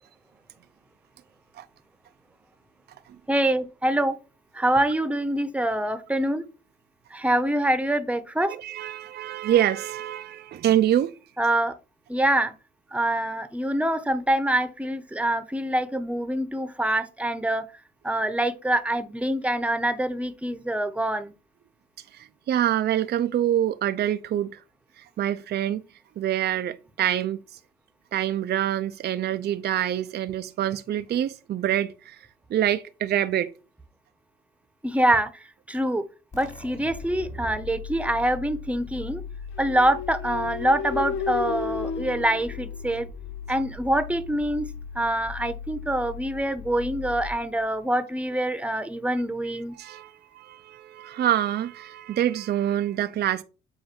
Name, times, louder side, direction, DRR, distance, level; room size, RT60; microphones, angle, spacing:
voice 1, 3.3-4.2 4.5-6.4 7.1-8.5 11.4-11.7 12.1-12.5 12.9-17.6 18.0-21.3 34.8-35.3 35.7-36.0 36.3-39.2 39.6-43.1 43.5-44.7 44.9-49.8, right 1 dB, 5° right, 0.9 m, -25 dB
voice 2, 8.4-11.1 22.1-24.5 25.2-25.8 26.2-27.4 28.1-32.2 32.5-33.5 49.8-53.4, right 11 dB, 55° right, 0.5 m, -26 dB
sound 1, 36.3-47.8, left 5 dB, 35° left, 2.6 m, -39 dB
sound 2, 39.6-43.4, left 5 dB, 80° left, 0.6 m, -33 dB
7.8 x 2.6 x 5.9 m
cardioid pair, 90°, 20 cm